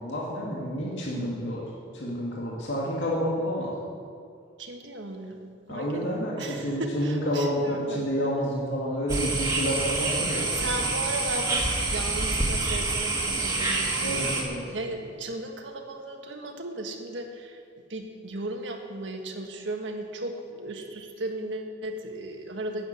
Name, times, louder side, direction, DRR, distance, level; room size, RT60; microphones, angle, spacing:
voice 1, 0.0-1.7 1.9-3.7 5.7-10.5 14.0-14.6, equal, 75° left, -5 dB, 2.1 m, -29 dB
voice 2, 4.6-5.4 5.7-8.1 10.3-14.4 14.7-17.6 17.9-22.9, right 1 dB, 75° right, 3 dB, 1.5 m, -36 dB
sound 1, 9.1-14.4, right 3 dB, 20° right, 1.8 m, -27 dB
11.5 x 8.1 x 9.0 m, 2.3 s
head